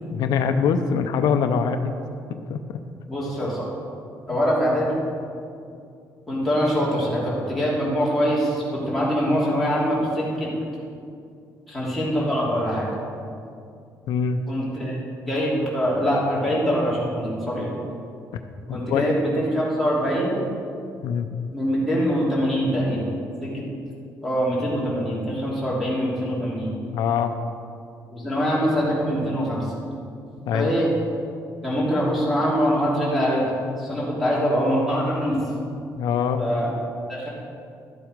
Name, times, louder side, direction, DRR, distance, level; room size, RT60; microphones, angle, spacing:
voice 1, 0.1-1.9 2.3-2.8 14.1-14.4 18.7-19.1 21.0-21.3 26.9-27.3 30.5-30.7 36.0-36.5, left 6 dB, 90° left, 7 dB, 0.6 m, -23 dB
voice 2, 3.1-3.6 4.3-5.0 6.3-10.5 11.7-12.9 14.5-15.0 15.3-17.9 18.7-20.4 21.5-23.1 23.4-23.6 24.2-26.7 28.1-29.7 30.5-30.9 31.6-33.4 33.8-35.4 36.4-36.7 37.1-37.3, equal, ahead, -8 dB, 2.9 m, -23 dB
12.5 x 7.7 x 5.1 m, 2.4 s
cardioid pair, 165°, 7 cm